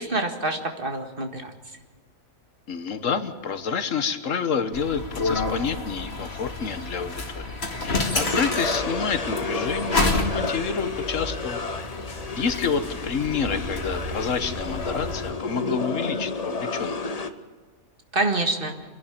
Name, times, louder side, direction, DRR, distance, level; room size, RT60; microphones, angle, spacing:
voice 1, 0.0-1.5 18.1-18.7, right 2 dB, 45° right, 5 dB, 2.1 m, -26 dB
voice 2, 2.7-7.5 7.8-11.6 12.0-17.0, left 6 dB, 80° left, 10 dB, 1.6 m, -28 dB
sound 1, 4.7-15.3, left 2 dB, 55° left, 2.4 m, -30 dB
sound 2, 8.1-17.3, left 3 dB, 35° left, 1.0 m, -31 dB
26.5 x 11.0 x 8.9 m, 1.5 s
omnidirectional pair, 1.3 m